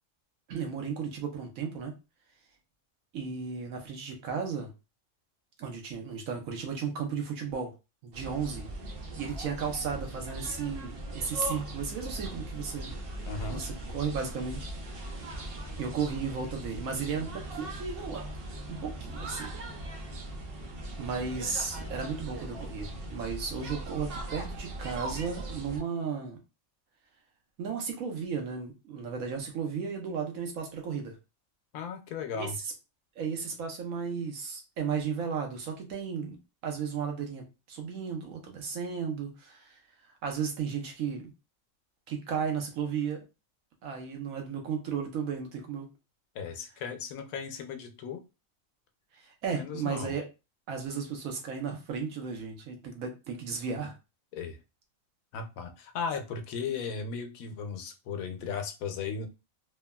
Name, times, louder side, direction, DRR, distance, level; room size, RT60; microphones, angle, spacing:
voice 1, 0.5-1.9 3.1-4.7 5.6-7.7 8.0-8.7 9.2-12.9 13.5-14.7 15.8-18.3 18.7-19.5 21.0-26.4 27.6-31.2 32.3-32.5 33.2-39.8 40.2-41.3 42.1-43.2 43.8-45.9 49.1-50.2 50.7-54.0, right 6 dB, 90° right, 3 dB, 1.2 m, -34 dB
sound 1, 8.1-25.8, right 1 dB, 55° right, 0.7 m, -39 dB
voice 2, 13.3-13.6 31.7-32.6 46.3-48.2 49.5-50.2 54.3-54.6 55.3-59.3, left 5 dB, 85° left, 6 dB, 1.0 m, -36 dB
3.2 x 2.2 x 2.2 m, 0.28 s
omnidirectional pair, 1.4 m